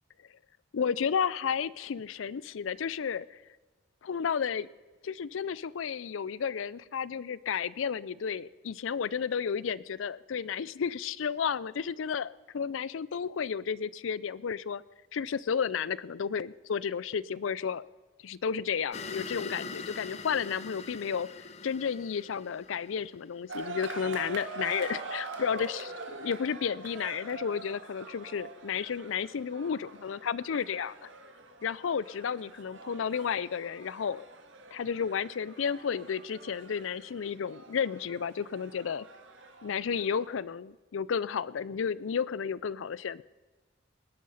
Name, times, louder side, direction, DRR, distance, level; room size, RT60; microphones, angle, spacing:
voice 1, 0.7-3.4 4.0-4.7 5.0-14.8 15.1-17.8 18.2-21.3 21.6-31.1 31.6-34.2 34.7-39.1 39.6-43.2, left 6 dB, 85° left, 20 dB, 0.4 m, -32 dB
sound 1, 18.9-23.5, left 4 dB, 35° left, 0.6 m, -43 dB
sound 2, 23.5-40.4, right 3 dB, 75° right, 1.8 m, -44 dB
20.0 x 10.5 x 5.7 m, 1.2 s
head